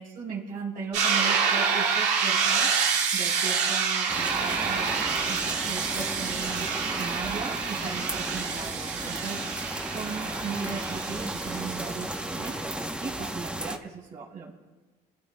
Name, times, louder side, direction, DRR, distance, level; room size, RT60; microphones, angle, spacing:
voice 1, 0.0-2.7 3.1-6.7 7.0-14.5, right 5 dB, 60° right, -4 dB, 3.3 m, -37 dB
sound 1, 0.9-12.6, right 6 dB, 85° right, 2.2 m, -28 dB
sound 2, 4.1-13.8, right 1 dB, 5° right, 0.8 m, -34 dB
27.0 x 13.0 x 2.2 m, 1.3 s
cardioid pair, 110°, 17 cm